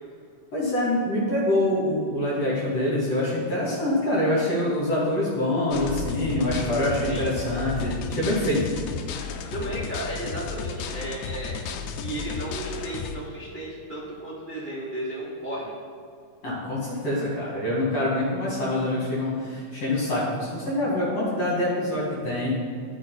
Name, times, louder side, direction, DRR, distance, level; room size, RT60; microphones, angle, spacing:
voice 1, 0.5-8.7 16.4-22.6, left 1 dB, 50° left, -7 dB, 3.1 m, -25 dB
sound 1, 5.7-13.2, left 5 dB, 85° left, 1.7 m, -33 dB
voice 2, 9.5-11.6 12.0-15.7, right 1 dB, 80° right, -7 dB, 0.4 m, -34 dB
13.0 x 4.9 x 4.0 m, 2.4 s
omnidirectional pair, 3.9 m